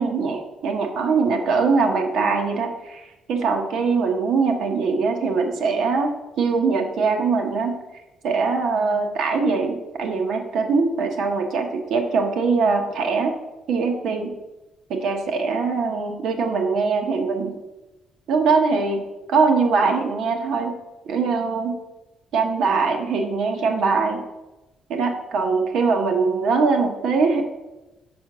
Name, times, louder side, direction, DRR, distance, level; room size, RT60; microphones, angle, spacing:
voice 1, 0.0-6.1 6.4-7.8 8.2-13.3 13.7-14.3 14.9-17.5 18.3-19.0 19.3-20.8 21.1-21.8 22.3-24.2 24.9-27.4, right 4 dB, 60° right, 3 dB, 0.9 m, -22 dB
5.6 x 4.4 x 5.9 m, 1.0 s
cardioid pair, 175°, 0 cm